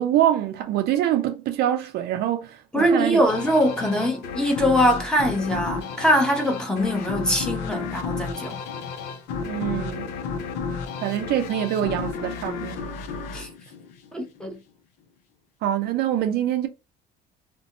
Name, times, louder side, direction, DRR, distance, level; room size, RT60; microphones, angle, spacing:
voice 1, 0.0-3.2 9.4-10.1 11.0-12.9 15.6-16.7, right 11 dB, 75° right, 0.5 m, -25 dB
voice 2, 2.7-8.6 13.3-13.5 14.1-14.6, equal, 5° left, 0.8 m, -22 dB
sound 1, 3.3-14.5, left 5 dB, 85° left, 0.6 m, -32 dB
2.6 x 2.2 x 2.7 m
cardioid pair, 110°, 17 cm